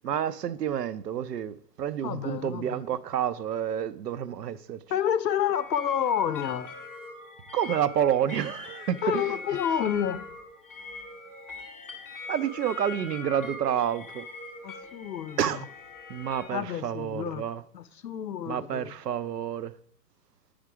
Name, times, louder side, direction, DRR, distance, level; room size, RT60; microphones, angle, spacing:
voice 1, 0.0-4.8 7.5-9.6 12.3-14.2 15.4-15.7 16.1-17.6 18.5-19.7, right 9 dB, 70° right, 0.6 m, -29 dB
voice 2, 2.0-2.8 4.9-6.7 9.0-10.2 14.6-15.6 16.5-17.4 17.7-19.0, left 9 dB, 80° left, 0.7 m, -29 dB
sound 1, 5.4-16.5, left 4 dB, 5° left, 0.6 m, -42 dB
8.7 x 5.0 x 4.6 m
figure-of-eight pair, 125°, 50 cm